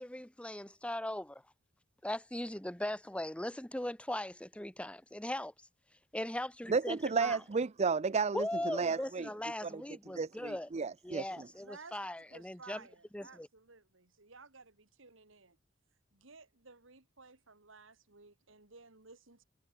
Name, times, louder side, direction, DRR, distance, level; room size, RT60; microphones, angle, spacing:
voice 1, 0.0-1.4 2.0-5.5 6.1-7.4 8.3-10.7 11.0-12.8 13.1-13.5, left 1 dB, 5° left, 1.0 m, -39 dB
voice 2, 6.7-9.3 9.6-9.8 10.1-11.5, right 4 dB, 30° right, 0.4 m, -33 dB
voice 3, 11.6-15.6 16.1-19.4, right 4 dB, 65° right, 2.5 m, -56 dB
head